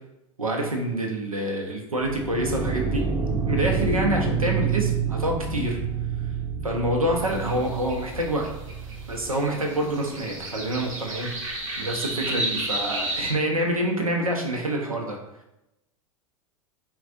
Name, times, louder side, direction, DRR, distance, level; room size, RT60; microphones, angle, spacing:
voice 1, 0.4-3.1 3.5-5.8 6.6-8.5 9.1-11.3 11.8-15.2, right 1 dB, 90° right, 1 dB, 0.8 m, -26 dB
sound 1, 2.2-9.3, right 5 dB, 20° right, 0.5 m, -28 dB
sound 2, 7.2-13.3, right 1 dB, 65° right, 1.1 m, -33 dB
7.1 x 2.4 x 2.6 m, 0.91 s
figure-of-eight pair, 90°, 18 cm